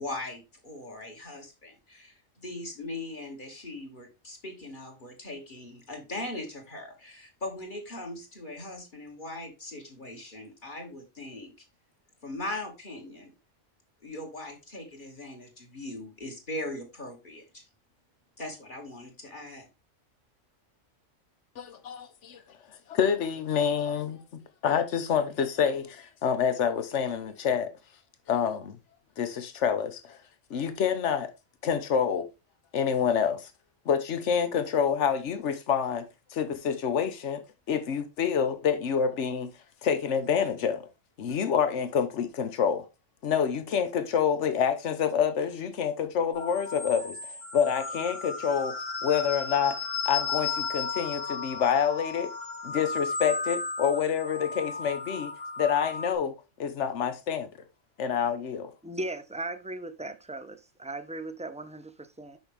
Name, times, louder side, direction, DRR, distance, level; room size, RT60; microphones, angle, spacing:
voice 1, 0.0-11.5 12.2-13.3 14.0-17.6 18.4-19.7, left 1 dB, 40° left, 2.2 m, -40 dB
voice 2, 21.6-22.4 22.9-27.7 28.3-28.8 29.2-30.2 30.5-31.3 31.6-32.3 32.7-33.5 33.9-36.1 36.3-37.4 37.7-39.5 39.8-40.9 41.2-42.8 43.2-47.2 47.5-48.8 49.0-49.8 50.0-52.3 52.6-55.3 55.6-56.3 56.6-57.5 58.0-58.7, left 7 dB, 70° left, 1.3 m, -27 dB
sound 1, 46.3-56.1, left 4 dB, 90° left, 2.1 m, -34 dB
voice 3, 58.8-62.4, right 2 dB, 10° right, 0.4 m, -37 dB
6.2 x 6.2 x 3.4 m
omnidirectional pair, 1.3 m